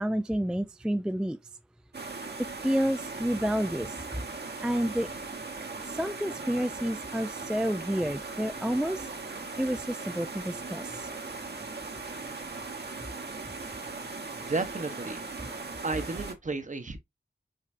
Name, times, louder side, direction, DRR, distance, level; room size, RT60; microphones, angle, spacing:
voice 1, 0.0-1.4 2.6-4.0 4.6-5.1 5.8-9.1 9.6-11.1, equal, 5° right, 0.3 m, -29 dB
sound 1, 1.9-16.3, right 3 dB, 60° right, 1.1 m, -39 dB
voice 2, 14.4-17.0, right 3 dB, 40° right, 0.9 m, -34 dB
5.3 x 3.8 x 2.6 m
wide cardioid pair, 80°, 20 cm